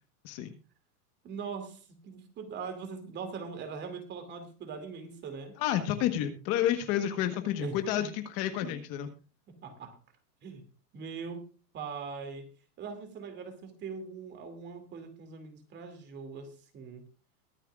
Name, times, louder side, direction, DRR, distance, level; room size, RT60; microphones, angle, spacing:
voice 1, 1.2-5.6 7.6-8.1 8.6-8.8 9.6-10.0 10.4-10.6 10.9-11.4 11.7-12.5 12.8-17.1, right 5 dB, 25° right, 7 dB, 2.5 m, -41 dB
voice 2, 5.6-9.1, left 11 dB, 30° left, 8 dB, 1.3 m, -30 dB
22.5 x 9.0 x 2.4 m, 0.34 s
supercardioid pair, 155°, 47 cm